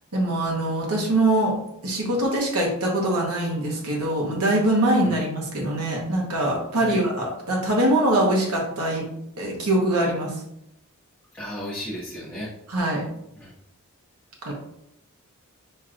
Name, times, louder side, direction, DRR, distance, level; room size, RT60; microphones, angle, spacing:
voice 1, 0.1-1.5 1.8-9.0 9.4-10.3 12.7-13.1 14.4-14.5, right 1 dB, 70° right, -2 dB, 1.2 m, -23 dB
voice 2, 11.3-12.5 13.3-13.5, equal, 10° left, -7 dB, 0.9 m, -34 dB
6.9 x 3.0 x 2.5 m, 0.78 s
head